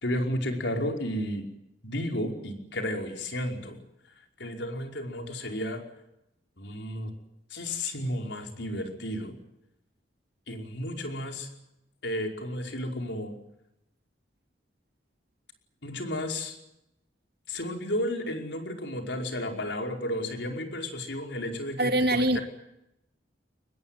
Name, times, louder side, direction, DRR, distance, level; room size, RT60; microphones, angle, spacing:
voice 1, 0.0-1.4 1.8-3.8 4.2-5.8 6.6-7.1 7.5-9.3 10.5-11.5 12.0-13.3 15.8-16.6 17.5-22.4, left 1 dB, 70° left, 3 dB, 5.2 m, -32 dB
voice 2, 21.8-22.4, right 1 dB, 60° right, 8 dB, 2.3 m, -23 dB
24.0 x 20.5 x 9.1 m, 0.85 s
head